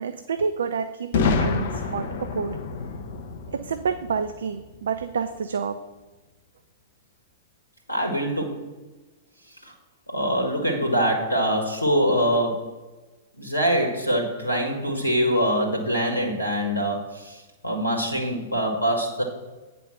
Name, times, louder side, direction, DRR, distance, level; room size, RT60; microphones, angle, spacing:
voice 1, 0.0-2.6 3.5-5.8, right 6 dB, 70° right, 10 dB, 0.5 m, -28 dB
Boom, 1.1-5.0, left 4 dB, 55° left, 1.0 m, -28 dB
voice 2, 7.9-8.6 10.1-12.8 13.4-19.2, equal, 90° left, 3 dB, 1.4 m, -24 dB
9.2 x 5.2 x 5.7 m, 1.2 s
figure-of-eight pair, 105°, 0 cm